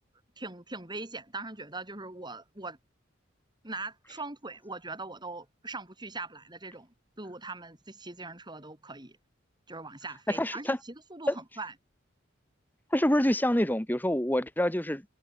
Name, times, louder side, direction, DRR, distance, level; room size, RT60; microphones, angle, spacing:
voice 1, 0.4-2.8 3.6-9.2 9.7-11.7, right 3 dB, 25° right, 4.9 m, -41 dB
voice 2, 10.3-10.8 11.3-11.4 12.9-15.2, left 1 dB, 10° left, 2.2 m, -26 dB
head